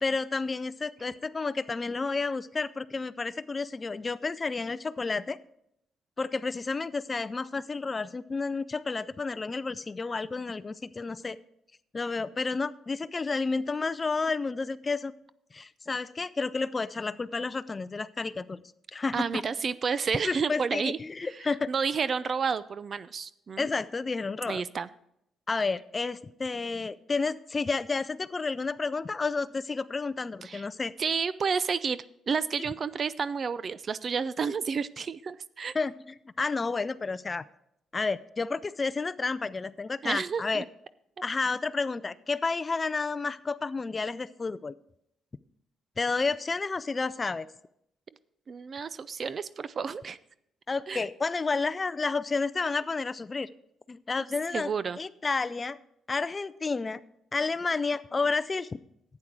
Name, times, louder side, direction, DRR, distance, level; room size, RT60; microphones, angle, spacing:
voice 1, 0.0-5.4 6.2-11.4 11.9-15.1 15.5-18.6 18.9-19.4 20.2-21.7 23.6-24.6 25.5-30.9 35.7-37.4 37.9-40.6 41.2-44.7 46.0-47.5 50.7-53.5 53.9-54.7 55.0-55.8 56.1-57.0 57.3-58.7, left 4 dB, 30° left, 16 dB, 0.4 m, -31 dB
voice 2, 19.1-21.0 21.7-23.7 24.5-24.9 30.4-30.6 31.0-35.8 40.0-40.6 48.5-50.2 50.9-51.0 54.5-55.0, right 5 dB, 45° right, 17 dB, 0.4 m, -30 dB
11.5 x 8.8 x 4.6 m, 0.77 s
cardioid pair, 90°, 0 cm